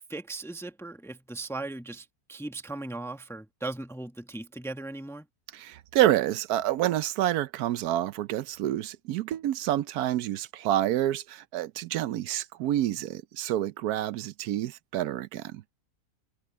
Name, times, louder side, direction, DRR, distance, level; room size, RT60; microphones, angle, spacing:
voice 1, 0.0-5.3, right 2 dB, ahead, 0.9 m, -38 dB
voice 2, 5.5-15.7, right 13 dB, 80° right, 1.1 m, -28 dB
omnidirectional pair, 1.6 m